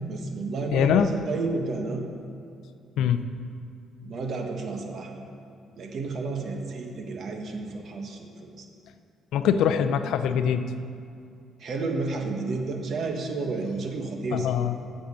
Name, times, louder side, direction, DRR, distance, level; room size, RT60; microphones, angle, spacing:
voice 1, 0.0-2.0 4.0-5.1 5.8-8.7 11.6-14.5, right 3 dB, 55° right, 3 dB, 1.3 m, -31 dB
voice 2, 0.7-1.1 3.0-3.3 9.3-10.6 14.3-14.8, left 8 dB, 80° left, 10 dB, 0.5 m, -23 dB
7.8 x 6.7 x 6.9 m, 2.4 s
cardioid pair, 105°, 0 cm